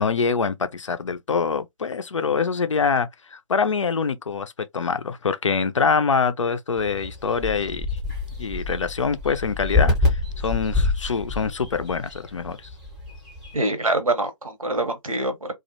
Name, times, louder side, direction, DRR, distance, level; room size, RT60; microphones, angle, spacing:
voice 1, 0.0-7.9 8.4-12.7, left 5 dB, 65° left, 0.5 m, -25 dB
sound 1, 6.8-13.6, left 3 dB, 5° right, 0.7 m, -27 dB
voice 2, 13.5-15.5, right 2 dB, 85° right, 1.0 m, -25 dB
2.4 x 2.1 x 2.7 m
figure-of-eight pair, 145°, 17 cm